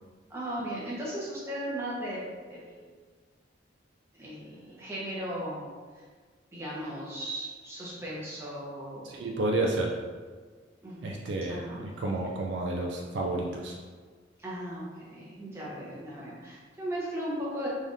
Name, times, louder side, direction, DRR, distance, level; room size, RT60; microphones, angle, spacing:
voice 1, 0.3-2.9 4.2-6.0 6.5-9.1 10.8-12.3 14.4-17.7, right 1 dB, 15° right, -7 dB, 0.9 m, -37 dB
voice 2, 9.0-9.9 11.0-13.8, right 2 dB, 65° right, 0 dB, 0.4 m, -30 dB
3.7 x 3.3 x 2.6 m, 1.5 s
head